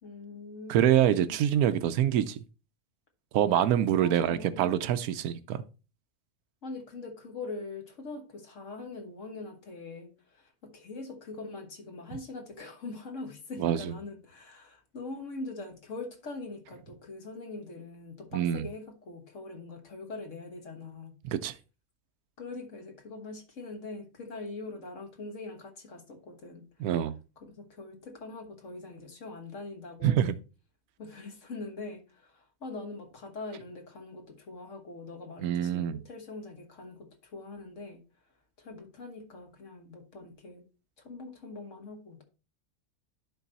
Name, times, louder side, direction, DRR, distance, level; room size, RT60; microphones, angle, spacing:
voice 1, 0.0-1.5 4.0-4.7 6.6-21.2 22.4-26.9 27.4-30.3 31.0-38.0 38.6-40.7 41.0-42.2, left 3 dB, 60° left, 1.6 m, -43 dB
voice 2, 0.7-2.4 3.3-5.6 13.6-13.9 18.3-18.7 21.3-21.5 26.8-27.1 30.0-30.4 35.4-36.0, right 10 dB, 90° right, 1.1 m, -25 dB
10.5 x 4.0 x 4.0 m
omnidirectional pair, 1.5 m